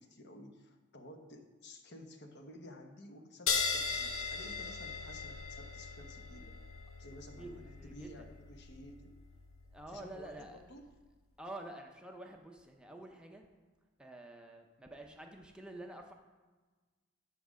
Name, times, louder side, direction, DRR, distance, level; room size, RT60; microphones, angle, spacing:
voice 1, 0.0-6.6 7.0-9.1 9.9-10.8, left 1 dB, 55° left, 5 dB, 0.9 m, -53 dB
sound 1, 3.5-10.4, left 5 dB, 90° left, 0.8 m, -39 dB
voice 2, 7.4-8.3 9.7-10.6 11.4-13.4 14.0-16.1, right 1 dB, 5° right, 2 dB, 0.6 m, -48 dB
7.3 x 5.9 x 6.2 m, 1.3 s
head